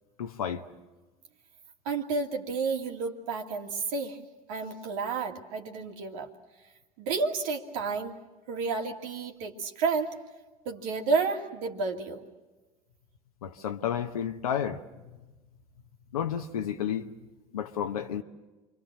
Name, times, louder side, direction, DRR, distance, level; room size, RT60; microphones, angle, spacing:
voice 1, 0.2-0.6 13.4-14.8 16.1-17.1 17.5-18.2, left 9 dB, 80° left, 1.0 m, -31 dB
voice 2, 1.8-4.2 4.5-6.3 7.0-8.2 8.5-10.1 10.6-12.2, right 4 dB, 70° right, 2.5 m, -31 dB
28.5 x 24.0 x 7.5 m
hypercardioid pair, 65°, 18 cm